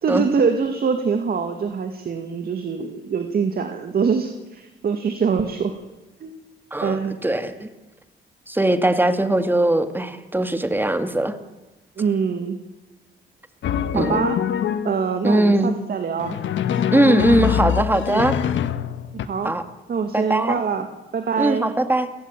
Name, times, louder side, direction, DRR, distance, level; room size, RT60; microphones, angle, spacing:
voice 1, 0.0-5.8 6.2-6.3 6.8-7.2 12.0-12.6 13.9-14.4 14.8-16.4 18.1-18.3 19.1-19.5 19.9-20.9 21.1-21.7, right 6 dB, 50° right, 6 dB, 2.1 m, -24 dB
voice 2, 6.7-7.7 8.5-11.4 13.9-14.3 15.2-15.7 16.9-18.3 19.4-19.6 20.1-20.6 21.4-22.1, right 1 dB, 10° right, 8 dB, 2.3 m, -20 dB
Drum, 13.6-15.1 16.2-19.3, left 9 dB, 70° left, 1.4 m, -24 dB
30.0 x 17.0 x 7.5 m, 1.1 s
cardioid pair, 90°, 20 cm